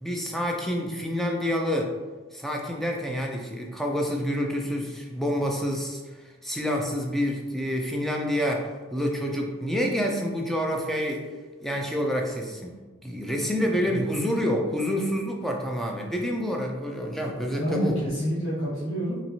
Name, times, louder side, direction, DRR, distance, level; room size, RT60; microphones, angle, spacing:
voice 1, 0.0-1.9 2.3-11.3 11.6-12.7 13.0-18.0, equal, ahead, 0 dB, 0.4 m, -28 dB
voice 2, 13.7-14.0 17.6-19.2, equal, 90° left, -9 dB, 1.0 m, -28 dB
4.4 x 3.0 x 2.7 m, 1.3 s
head